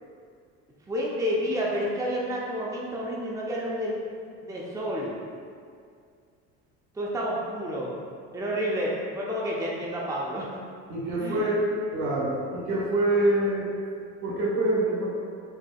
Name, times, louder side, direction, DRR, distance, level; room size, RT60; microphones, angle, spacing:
voice 1, 0.9-4.1 4.4-5.2 6.9-7.9 8.3-10.6 11.2-11.4, equal, 10° right, -4 dB, 0.5 m, -30 dB
voice 2, 10.9-11.6 11.9-13.7 14.2-15.1, right 1 dB, 70° right, -5 dB, 1.3 m, -25 dB
4.7 x 2.8 x 2.3 m, 2.2 s
supercardioid pair, 80°, 33 cm